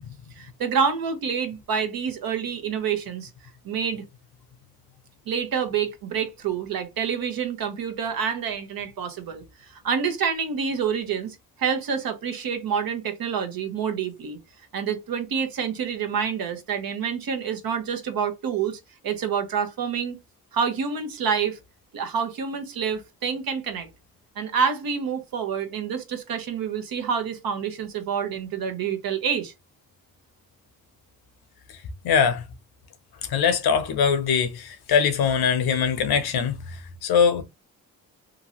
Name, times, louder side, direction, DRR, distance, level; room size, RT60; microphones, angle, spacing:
voice 1, 0.4-3.3 3.6-4.0 5.3-9.4 9.7-14.4 14.7-20.2 20.5-21.6 21.9-23.9 24.4-29.5, right 7 dB, 70° right, 0.9 m, -27 dB
voice 2, 32.0-32.4 33.3-37.4, left 7 dB, 80° left, 0.8 m, -22 dB
2.9 x 2.5 x 2.8 m
cardioid pair, 65°, 37 cm